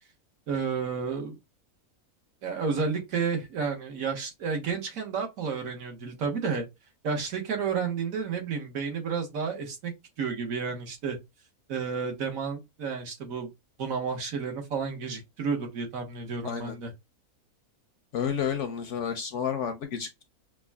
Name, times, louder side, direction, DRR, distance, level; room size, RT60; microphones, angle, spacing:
voice 1, 0.5-1.4 2.4-6.6 7.0-9.9 10.2-11.2 11.7-13.5 13.8-16.9, right 5 dB, 65° right, 1.4 m, -31 dB
voice 2, 16.4-16.8 18.1-20.2, left 7 dB, 65° left, 0.8 m, -31 dB
5.8 x 2.2 x 2.2 m
omnidirectional pair, 1.6 m